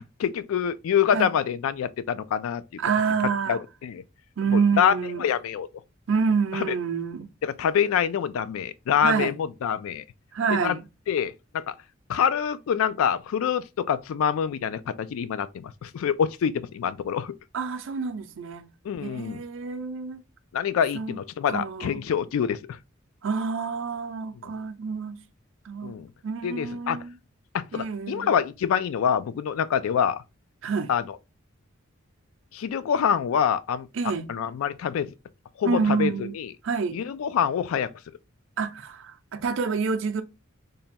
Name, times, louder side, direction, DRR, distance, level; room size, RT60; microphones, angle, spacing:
voice 1, 0.2-2.6 3.5-4.0 4.5-4.9 5.2-5.7 6.5-6.7 7.4-10.0 10.5-10.8 11.1-11.7 12.1-17.3 18.9-19.4 20.5-22.6 24.4-24.5 25.8-26.1 26.4-27.0 27.5-30.2 30.9-31.0 32.5-33.9 34.3-35.1 35.6-36.5 36.9-37.9, left 8 dB, 75° left, 0.3 m, -26 dB
voice 2, 2.8-3.6 4.4-5.3 6.1-7.3 9.0-9.4 10.3-10.9 17.5-18.6 19.0-20.2 20.9-21.2 21.5-22.0 23.2-25.2 25.6-25.9 26.2-27.1 27.7-28.3 30.6-30.9 33.9-34.2 35.6-36.4 36.6-37.0 38.6-40.2, right 5 dB, 60° right, 0.5 m, -27 dB
3.4 x 2.2 x 4.1 m
head